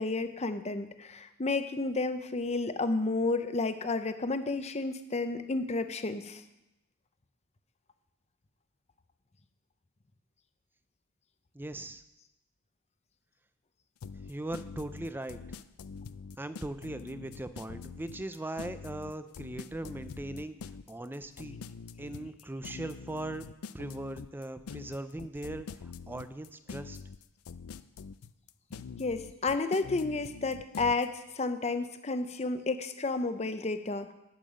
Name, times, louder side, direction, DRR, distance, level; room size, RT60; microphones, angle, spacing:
voice 1, 0.0-6.4 29.0-34.1, left 3 dB, 30° left, 10 dB, 0.6 m, -31 dB
voice 2, 11.5-12.0 14.1-15.6 16.4-21.6 22.0-23.5 23.7-27.0, right 1 dB, 10° right, 11 dB, 0.4 m, -39 dB
sound 1, 14.0-31.1, left 5 dB, 75° left, 0.4 m, -44 dB
8.9 x 8.7 x 6.4 m, 0.92 s
head